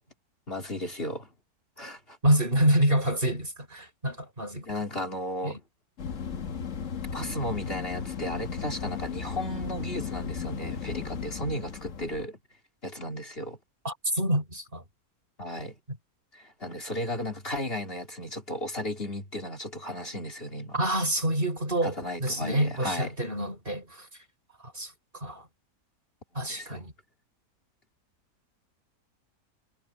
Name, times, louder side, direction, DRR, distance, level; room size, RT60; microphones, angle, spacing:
voice 1, 0.5-1.3 1.8-2.2 4.6-5.6 7.1-12.4 12.8-13.6 15.4-15.7 16.3-20.8 21.8-23.2 26.5-26.9, left 1 dB, 40° left, 3.6 m, -35 dB
voice 2, 2.2-4.7 5.4-5.6 13.8-14.8 15.9-16.0 20.7-24.1 24.7-25.5 26.3-26.9, right 1 dB, 35° right, 5.0 m, -27 dB
sound 1, 6.0-12.3, left 6 dB, 55° left, 1.6 m, -35 dB
omnidirectional pair, 1.6 m